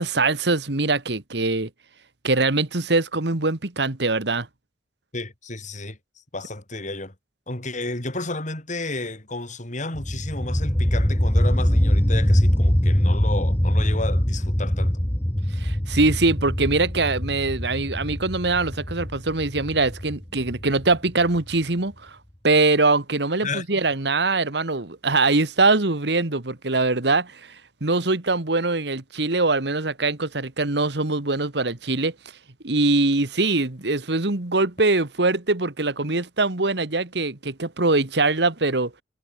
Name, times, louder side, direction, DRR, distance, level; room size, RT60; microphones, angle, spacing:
voice 1, 0.0-1.7 2.2-4.5 15.6-22.2 22.4-27.4 27.8-32.1 32.6-38.9, right 3 dB, 70° right, 1.9 m, -22 dB
voice 2, 5.1-6.0 6.3-7.1 7.5-15.0 23.4-23.6, left 2 dB, 45° left, 5.0 m, -32 dB
sound 1, 9.9-21.5, equal, 15° left, 1.1 m, -23 dB
head